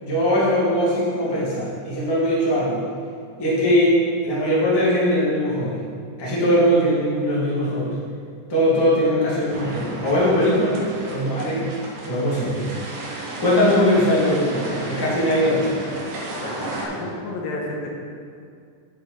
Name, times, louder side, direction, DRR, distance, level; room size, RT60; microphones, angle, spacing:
voice 1, 0.0-2.8 3.4-5.8 6.2-7.9 8.5-10.8 11.1-11.7 12.0-12.6 13.4-15.8, equal, 10° left, -7 dB, 1.1 m, -20 dB
sound 1, 9.5-16.9, right 2 dB, 85° right, 3.3 m, -33 dB
voice 2, 16.3-17.9, left 2 dB, 80° left, -1 dB, 2.9 m, -31 dB
10.0 x 7.5 x 4.0 m, 2.3 s
omnidirectional pair, 4.1 m